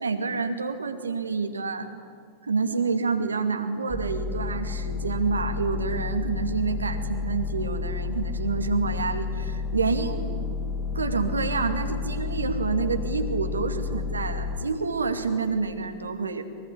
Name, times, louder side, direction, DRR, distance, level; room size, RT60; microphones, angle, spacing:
voice 1, 0.0-1.9 2.4-10.3 10.9-16.4, right 4 dB, 75° right, 7 dB, 2.4 m, -28 dB
sound 1, 3.9-14.6, left 4 dB, 25° left, 4.8 m, -31 dB
24.0 x 23.5 x 10.0 m, 2.3 s
figure-of-eight pair, 90°, 0 cm